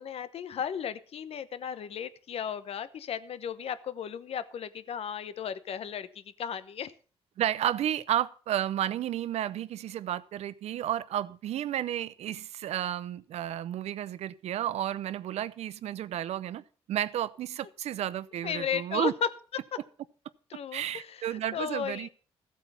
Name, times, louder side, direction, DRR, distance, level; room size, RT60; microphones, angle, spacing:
voice 1, 0.0-6.9 18.4-19.3 20.5-22.1, left 8 dB, 65° left, 1.0 m, -35 dB
voice 2, 7.4-16.6 16.9-19.1 20.7-22.1, right 11 dB, 80° right, 0.6 m, -32 dB
15.0 x 8.4 x 5.6 m
cardioid pair, 95°, 11 cm